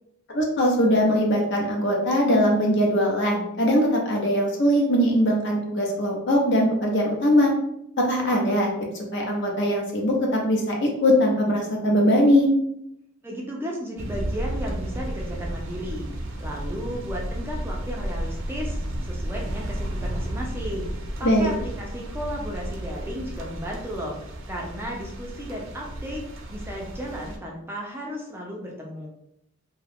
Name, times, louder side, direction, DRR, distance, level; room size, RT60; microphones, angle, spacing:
voice 1, 0.3-7.5 8.0-8.7 9.1-12.5 21.2-21.5, equal, 55° left, 0 dB, 0.7 m, -21 dB
voice 2, 13.2-16.1 16.4-20.9 21.2-24.2 24.5-29.1, equal, 10° right, -2 dB, 0.4 m, -34 dB
sound 1, 14.0-27.4, right 1 dB, 60° right, 0.6 m, -33 dB
2.7 x 2.3 x 3.4 m, 0.77 s
head